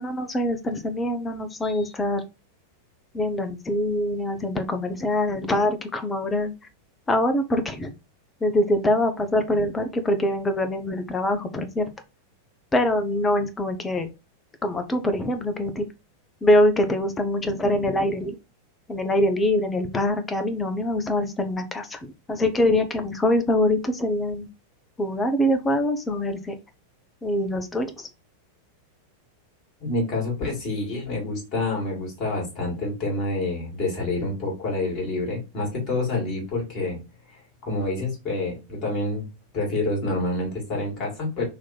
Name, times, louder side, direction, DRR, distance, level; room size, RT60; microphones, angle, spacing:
voice 1, 0.0-2.2 3.1-6.5 7.1-7.9 8.4-11.8 12.7-14.1 14.6-15.8 16.4-18.4 18.9-24.5 25.0-26.5 27.2-28.1, left 1 dB, 15° left, 7 dB, 0.8 m, -24 dB
voice 2, 29.8-37.0 37.3-39.3 39.5-41.4, left 2 dB, 35° left, -1 dB, 2.5 m, -27 dB
4.1 x 3.0 x 4.3 m, 0.27 s
figure-of-eight pair, 90°, 0 cm